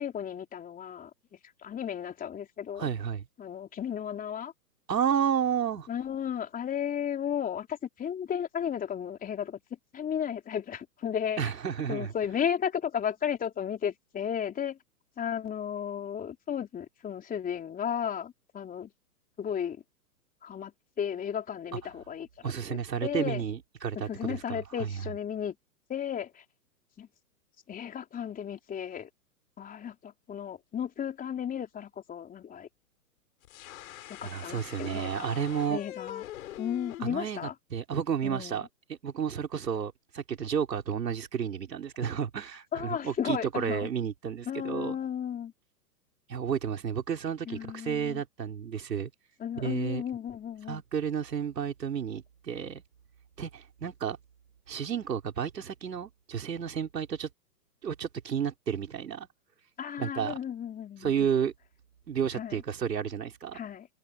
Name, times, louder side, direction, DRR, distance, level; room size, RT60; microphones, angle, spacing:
voice 1, 0.0-2.9 3.4-4.5 5.9-9.6 9.9-11.4 11.9-14.8 15.2-18.9 19.4-19.8 20.4-23.4 23.9-25.6 25.9-26.4 27.0-27.1 27.7-29.1 29.6-32.7 34.1-35.4 35.7-36.2 36.6-37.5 38.2-38.7 42.7-43.9 44.5-45.5 47.5-48.2 49.4-50.8 59.8-61.3 62.3-62.6 63.5-63.9, left 8 dB, 15° left, 3.7 m, -34 dB
voice 2, 2.8-3.2 4.9-5.9 11.4-12.1 22.4-25.0 34.2-35.8 37.0-37.4 37.7-38.7 39.0-45.0 46.3-49.1 49.6-50.0 50.7-52.8 53.4-54.2 54.7-57.3 57.8-59.3 60.0-60.4 61.0-61.5 62.1-63.6, right 8 dB, 80° right, 4.3 m, -31 dB
sound 1, 33.4-37.0, left 13 dB, 55° left, 5.9 m, -43 dB
hypercardioid pair, 125°, 49 cm